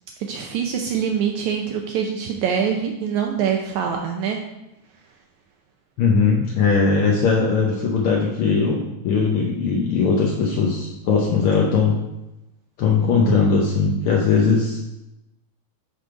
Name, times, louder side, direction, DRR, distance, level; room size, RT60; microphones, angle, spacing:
voice 1, 0.2-4.4, right 7 dB, 75° right, 2 dB, 1.9 m, -24 dB
voice 2, 6.0-11.9 12.8-14.8, left 5 dB, 80° left, -2 dB, 1.2 m, -19 dB
10.0 x 4.0 x 4.7 m, 0.94 s
omnidirectional pair, 3.6 m